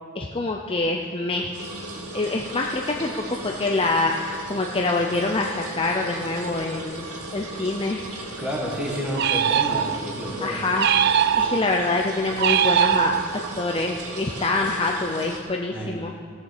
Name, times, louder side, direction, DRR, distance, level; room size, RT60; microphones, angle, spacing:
voice 1, 0.2-1.5 2.1-8.0 10.4-10.9 11.4-13.1 13.6-16.1, left 2 dB, 25° left, 1 dB, 0.5 m, -25 dB
sound 1, 1.5-15.4, right 2 dB, 90° right, 2.2 m, -36 dB
voice 2, 8.4-10.6 15.7-16.1, equal, 5° right, -2 dB, 1.7 m, -30 dB
sound 2, 9.2-10.2 10.8-11.8 12.4-13.6, right 8 dB, 50° right, 0.3 m, -21 dB
17.5 x 6.5 x 7.2 m, 2.1 s
head